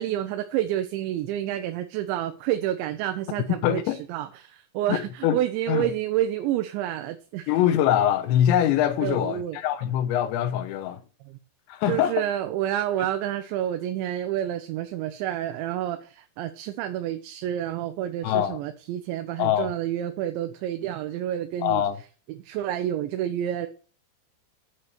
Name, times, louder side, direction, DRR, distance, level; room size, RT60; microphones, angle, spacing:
voice 1, 0.0-7.5 9.0-9.6 11.3-11.4 11.9-21.8 22.4-23.7, right 12 dB, 90° right, 3.2 m, -29 dB
voice 2, 3.6-4.0 4.9-5.4 5.7-5.9 7.5-11.0 11.7-12.2 18.2-18.6 19.4-19.7 21.6-22.0, left 11 dB, 90° left, 3.2 m, -23 dB
9.6 x 7.6 x 5.9 m
omnidirectional pair, 5.1 m